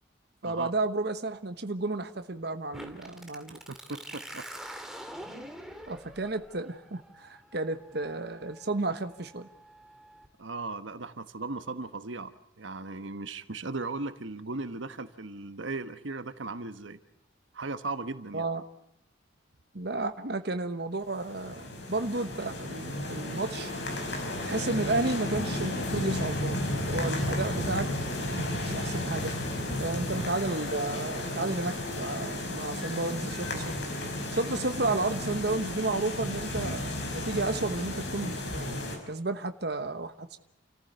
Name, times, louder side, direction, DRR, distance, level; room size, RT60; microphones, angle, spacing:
voice 1, 0.4-3.6 5.9-9.5 18.3-18.6 19.7-23.7 24.4-27.9 28.3-29.4 29.8-33.8 34.3-40.4, right 2 dB, 55° right, 8 dB, 1.2 m, -32 dB
sound 1, 2.7-10.3, right 1 dB, ahead, 2.1 m, -46 dB
voice 2, 3.7-4.5 10.4-17.0 17.5-18.4, right 3 dB, 80° right, 11 dB, 1.2 m, -37 dB
sound 2, 21.1-39.0, left 1 dB, 65° left, 5.6 m, -33 dB
29.0 x 14.5 x 8.1 m, 0.83 s
head